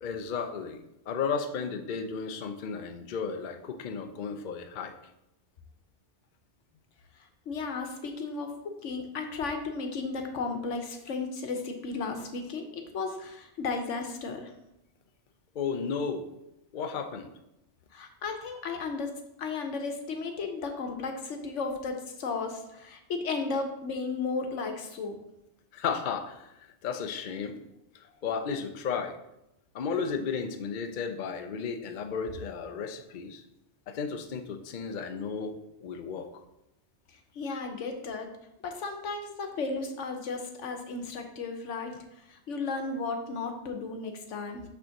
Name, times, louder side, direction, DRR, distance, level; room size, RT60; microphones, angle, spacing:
voice 1, 0.0-4.9 15.5-16.3 16.7-17.3 25.7-27.6 28.2-29.2 29.7-33.4 33.9-36.4, left 6 dB, 50° left, 6 dB, 0.6 m, -34 dB
voice 2, 7.5-14.5 17.9-19.1 19.4-25.2 37.1-38.3 38.6-44.6, left 4 dB, 85° left, 5 dB, 1.2 m, -34 dB
6.2 x 3.5 x 5.8 m, 0.86 s
omnidirectional pair, 1.2 m